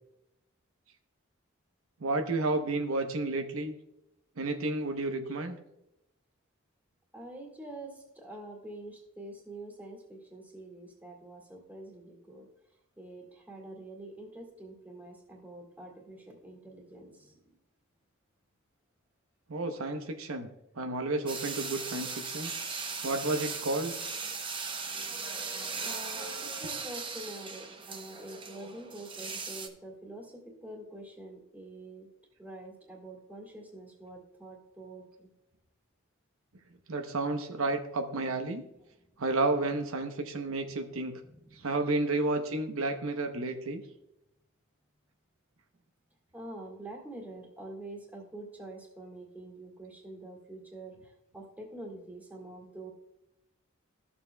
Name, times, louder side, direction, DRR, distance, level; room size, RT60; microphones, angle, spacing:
voice 1, 2.0-3.7 4.4-5.6 19.5-20.5 20.8-22.5 23.0-23.9 36.9-38.6 39.2-41.2 41.5-43.8, right 2 dB, 85° right, 5 dB, 0.8 m, -31 dB
voice 2, 7.1-12.5 13.0-17.6 25.8-32.1 32.4-35.3 41.2-41.6 46.3-52.9, right 1 dB, 10° right, 0 dB, 1.8 m, -46 dB
sound 1, 21.3-29.7, right 4 dB, 25° right, 0.7 m, -38 dB
14.0 x 7.0 x 2.2 m, 0.85 s
head